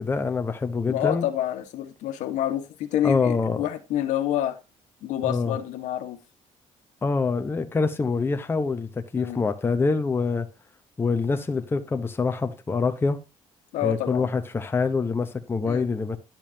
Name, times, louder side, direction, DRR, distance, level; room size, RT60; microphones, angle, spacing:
voice 1, 0.0-1.3 3.0-3.6 5.2-5.6 7.0-10.5 11.0-13.2 13.8-16.2, left 4 dB, 20° left, 0.9 m, -25 dB
voice 2, 0.9-4.6 5.0-6.2 9.1-9.4 13.7-14.3 15.6-15.9, left 12 dB, 80° left, 1.3 m, -28 dB
10.5 x 7.2 x 2.8 m
cardioid pair, 130°, 12 cm